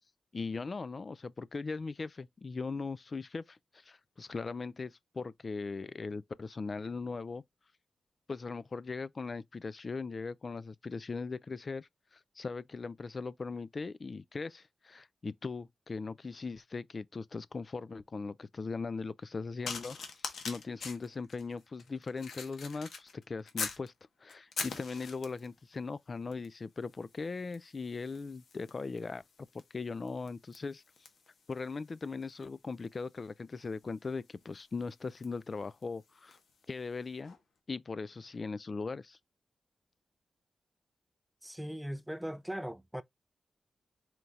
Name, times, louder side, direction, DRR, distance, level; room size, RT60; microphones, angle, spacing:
voice 1, 0.3-7.4 8.3-23.9 24.2-29.2 29.5-30.8 31.5-36.4 36.7-37.4 37.7-39.2, left 4 dB, 50° left, 0.3 m, -39 dB
sound 1, 19.6-23.9 24.3-25.5 26.3-26.6 26.8-36.5 37.2-37.4, left 5 dB, 80° left, 1.1 m, -44 dB
voice 2, 41.4-43.0, equal, 5° right, 0.5 m, -39 dB
4.4 x 3.8 x 2.4 m
cardioid pair, 50°, 0 cm